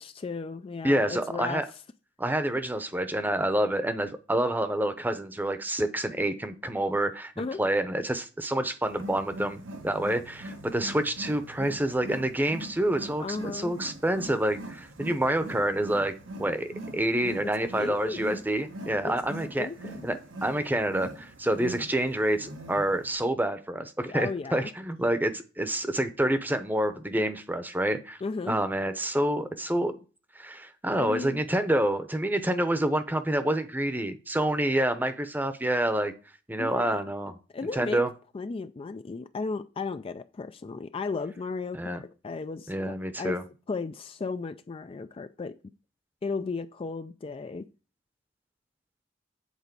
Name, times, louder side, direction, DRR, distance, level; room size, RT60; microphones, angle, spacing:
voice 1, 0.0-1.7 7.4-7.6 13.2-13.8 17.4-18.3 19.0-19.2 19.6-20.1 24.1-24.7 28.2-28.6 30.9-31.4 36.6-37.0 37.5-38.0 38.3-45.6 46.2-47.7, left 4 dB, 30° left, 0.3 m, -35 dB
voice 2, 0.8-1.7 2.2-16.1 16.4-19.7 20.0-28.2 28.5-29.9 30.4-36.1 36.5-37.3 37.7-38.1 41.7-42.0 42.7-43.4, right 1 dB, 10° right, 0.8 m, -28 dB
Wild animals, 8.8-23.1, right 1 dB, 90° right, 1.2 m, -42 dB
8.2 x 4.1 x 6.7 m
head